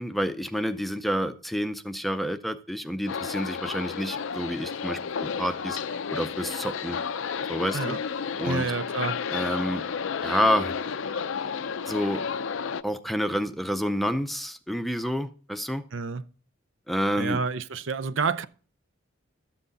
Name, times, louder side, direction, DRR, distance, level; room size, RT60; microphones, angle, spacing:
voice 1, 0.0-5.8 6.1-7.0 7.5-8.0 8.4-8.7 9.3-9.8 10.2-10.7 11.9-12.2 12.8-15.8 16.9-17.4, equal, ahead, 0.5 m, -28 dB
sound 1, 3.1-12.8, left 6 dB, 80° left, 0.5 m, -32 dB
voice 2, 8.4-9.2 15.9-16.2 17.2-18.5, right 5 dB, 70° right, 0.6 m, -29 dB
13.0 x 7.9 x 4.0 m
head